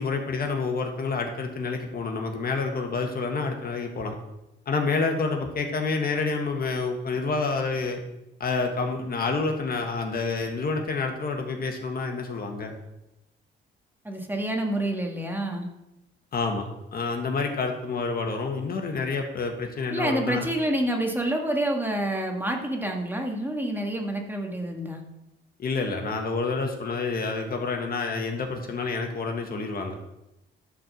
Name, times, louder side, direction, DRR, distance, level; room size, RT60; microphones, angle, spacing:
voice 1, 0.0-4.1 4.7-8.0 8.4-12.7 16.3-20.5 25.6-30.0, left 4 dB, 50° left, 3 dB, 1.5 m, -28 dB
voice 2, 14.0-15.7 19.9-25.0, right 1 dB, 10° right, 1 dB, 1.8 m, -28 dB
11.0 x 4.6 x 6.5 m, 0.91 s
cardioid pair, 90°, 20 cm